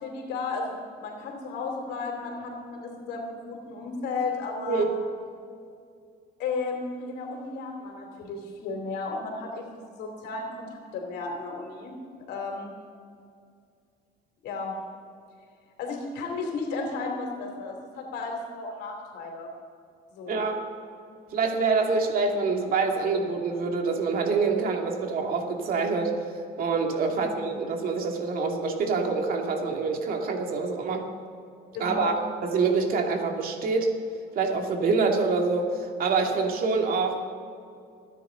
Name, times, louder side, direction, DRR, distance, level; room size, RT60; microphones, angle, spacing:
voice 1, 0.0-4.8 6.4-11.9 12.3-12.7 14.4-14.7 15.8-19.5 20.1-20.4 27.1-27.6 31.7-32.2, left 3 dB, 80° left, 2 dB, 3.0 m, -34 dB
voice 2, 20.3-20.7 21.3-26.1 26.6-31.1 31.8-33.9 34.3-37.2, right 4 dB, 60° right, 2 dB, 2.5 m, -26 dB
27.5 x 10.0 x 3.9 m, 2.4 s
cardioid pair, 110°, 17 cm